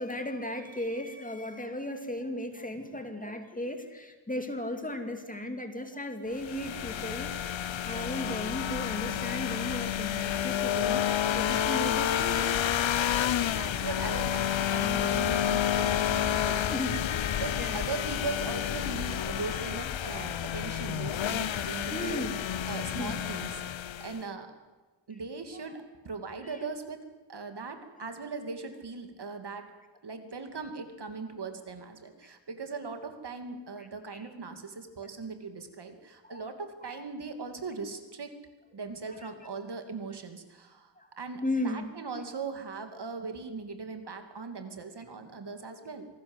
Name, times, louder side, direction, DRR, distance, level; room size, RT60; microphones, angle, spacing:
voice 1, 0.0-7.3 7.8-12.5 16.7-17.0 17.2-17.8 21.9-22.3 22.9-23.2 25.5-25.6 26.4-26.6 28.0-28.1 33.8-33.9 34.1-34.3 36.2-36.4 36.8-37.0 41.0-41.1 41.4-41.9, left 1 dB, 20° left, 6 dB, 2.5 m, -36 dB
sound 1, 6.4-24.2, left 10 dB, 80° left, 0.9 m, -30 dB
voice 2, 13.3-17.0 17.4-22.2 22.7-23.6 24.0-24.5 25.1-27.0 27.3-29.7 30.0-38.3 38.7-46.1, right 4 dB, 60° right, 7 dB, 2.8 m, -39 dB
26.5 x 18.5 x 8.1 m, 1.3 s
wide cardioid pair, 150°, 45 cm